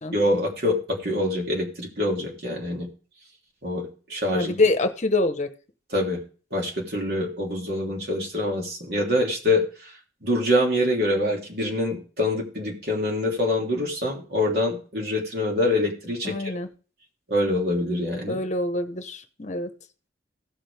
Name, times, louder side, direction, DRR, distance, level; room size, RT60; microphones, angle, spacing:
voice 1, 0.1-2.9 3.6-4.5 5.9-6.2 6.5-9.9 10.2-16.5 17.3-18.4, left 1 dB, 60° right, -1 dB, 3.2 m, -25 dB
voice 2, 4.3-5.5 16.2-16.7 18.3-19.7, left 2 dB, 40° left, 8 dB, 0.9 m, -25 dB
16.5 x 6.2 x 3.4 m, 0.37 s
head